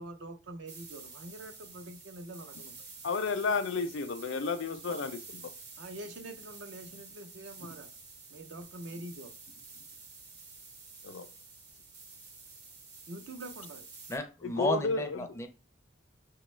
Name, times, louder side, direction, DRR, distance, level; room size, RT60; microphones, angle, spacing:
voice 1, 0.0-2.8 4.9-5.0 5.8-7.9 8.3-9.3 13.1-13.9 14.7-14.8, right 1 dB, 75° right, 0.6 m, -45 dB
sound 1, 0.7-14.2, right 4 dB, 55° right, 0.9 m, -50 dB
voice 2, 3.0-5.5 11.0-11.3 14.4-15.3, left 4 dB, 80° left, 0.4 m, -32 dB
voice 3, 14.1-15.5, left 1 dB, 15° left, 0.4 m, -33 dB
5.9 x 2.3 x 3.1 m
head